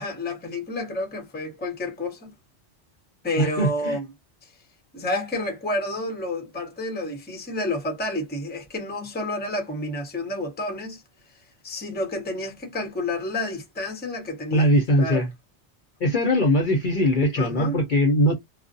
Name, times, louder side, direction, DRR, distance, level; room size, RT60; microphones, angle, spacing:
voice 1, 0.0-2.3 3.2-4.0 4.4-4.5 4.9-11.0 11.6-14.7 15.0-15.2 17.4-17.8, left 1 dB, 10° left, 0.6 m, -30 dB
voice 2, 3.4-4.0 14.5-15.3 16.0-18.3, equal, 50° left, 0.7 m, -21 dB
2.4 x 2.1 x 2.5 m
omnidirectional pair, 1.2 m